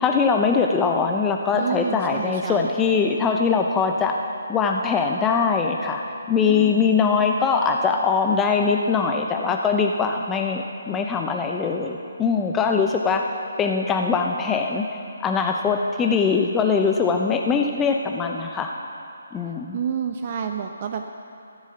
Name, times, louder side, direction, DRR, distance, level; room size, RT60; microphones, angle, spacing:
voice 1, 0.0-4.2 4.5-6.0 6.3-13.2 13.6-14.8 15.2-18.7 19.3-19.8, left 5 dB, 10° left, 2 dB, 0.6 m, -22 dB
voice 2, 1.5-2.7 6.4-7.0 19.7-21.1, right 7 dB, 40° right, 5 dB, 0.7 m, -29 dB
14.0 x 7.2 x 7.8 m, 2.7 s
figure-of-eight pair, 150°, 0 cm